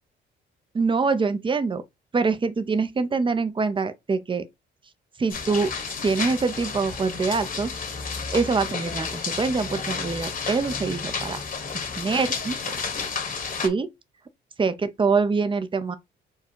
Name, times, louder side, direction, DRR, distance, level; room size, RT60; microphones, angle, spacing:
voice 1, 0.7-1.8 2.1-4.5 5.2-5.7 6.0-7.8 8.3-11.4 12.0-12.6 13.1-13.9 14.6-15.9, right 4 dB, 25° right, 0.6 m, -25 dB
memorial crash rainbuildup, 5.3-13.7, left 5 dB, 45° left, 1.3 m, -31 dB
4.5 x 2.3 x 4.6 m
cardioid pair, 90°, 20 cm